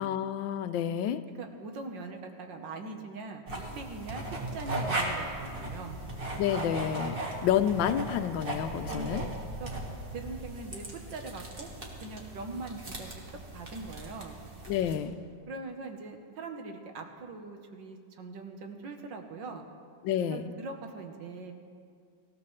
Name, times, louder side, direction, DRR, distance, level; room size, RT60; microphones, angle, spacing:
voice 1, 0.0-1.2 6.4-7.2 7.4-9.2 14.7-15.1 20.0-20.5, left 9 dB, 85° left, 11 dB, 1.3 m, -29 dB
voice 2, 1.4-3.4 3.8-6.0 8.9-9.3 9.6-9.7 10.1-11.7 12.0-13.1 13.5-14.4 15.5-19.7 20.3-21.5, right 3 dB, 75° right, 4 dB, 1.8 m, -41 dB
sound 1, 3.5-15.0, right 2 dB, 30° right, 1.7 m, -37 dB
19.0 x 15.5 x 3.2 m, 2.2 s
omnidirectional pair, 2.0 m